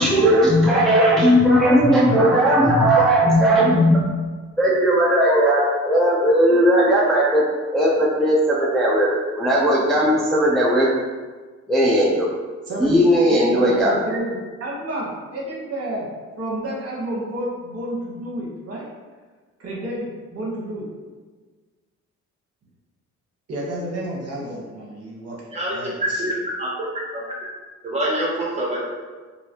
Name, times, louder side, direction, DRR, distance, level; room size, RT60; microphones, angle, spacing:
voice 1, 0.0-4.0 4.6-7.4 7.7-9.1 9.4-10.9 11.7-12.3 12.8-13.9, equal, ahead, -6 dB, 0.5 m, -17 dB
voice 2, 13.3-16.1 16.4-18.9 19.6-20.9 23.5-26.3, right 1 dB, 55° right, -4 dB, 1.1 m, -30 dB
voice 3, 27.8-28.8, right 1 dB, 20° right, -5 dB, 1.2 m, -25 dB
3.1 x 2.8 x 2.8 m, 1.4 s
cardioid pair, 90°, 30 cm